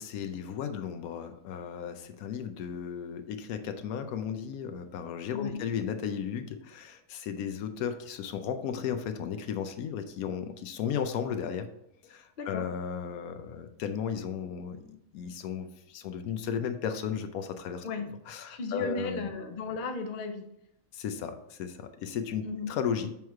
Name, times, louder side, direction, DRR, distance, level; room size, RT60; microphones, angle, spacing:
voice 1, 0.0-11.7 12.0-17.8 18.3-19.3 20.9-23.1, left 7 dB, 90° left, 8 dB, 1.1 m, -35 dB
voice 2, 5.3-5.7 12.4-12.7 17.8-18.1 18.5-20.5 22.4-22.7, left 4 dB, 50° left, 5 dB, 0.7 m, -35 dB
7.2 x 3.1 x 4.6 m, 0.79 s
omnidirectional pair, 1.5 m